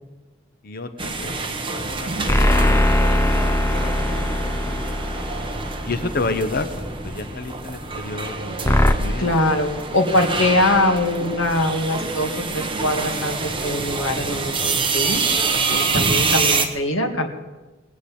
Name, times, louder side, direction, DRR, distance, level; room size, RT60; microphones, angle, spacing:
voice 1, 0.6-2.7 3.5-5.0 5.9-6.7 7.0-8.7 8.9-9.6 9.9-10.0, left 3 dB, 50° left, 9 dB, 0.9 m, -31 dB
sound 1, 1.0-16.7, right 4 dB, 25° right, 1.3 m, -26 dB
sound 2, 2.3-6.9 8.7-8.9, left 1 dB, 15° left, 0.8 m, -20 dB
voice 2, 9.2-15.2 15.5-17.3, left 1 dB, 65° left, 3 dB, 2.1 m, -22 dB
20.5 x 8.3 x 8.6 m, 1.2 s
head